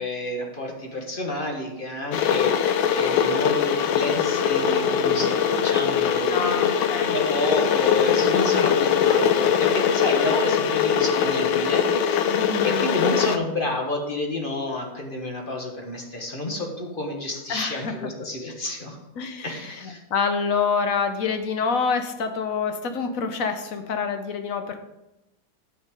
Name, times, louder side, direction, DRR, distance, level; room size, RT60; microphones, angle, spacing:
voice 1, 0.0-6.5 7.0-19.0 19.4-20.0, left 1 dB, 30° left, 1 dB, 1.4 m, -30 dB
Water / Boiling, 2.1-13.4, left 8 dB, 90° left, 1.5 m, -22 dB
voice 2, 6.3-7.2 8.1-8.6 12.3-12.9 17.5-18.1 19.2-24.8, left 5 dB, 55° left, 7 dB, 1.0 m, -27 dB
9.3 x 6.6 x 5.2 m, 0.94 s
omnidirectional pair, 2.1 m